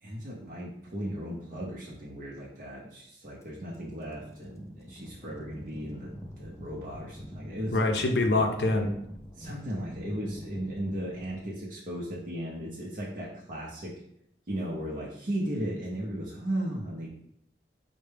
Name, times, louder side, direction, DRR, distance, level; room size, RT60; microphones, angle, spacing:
voice 1, 0.0-7.8 9.4-13.9 14.5-17.1, right 1 dB, 50° right, -5 dB, 0.6 m, -36 dB
sound 1, 3.4-11.5, equal, 15° left, 0.4 m, -46 dB
voice 2, 7.7-8.9, left 2 dB, 65° left, 4 dB, 0.5 m, -24 dB
4.4 x 2.1 x 3.3 m, 0.74 s
head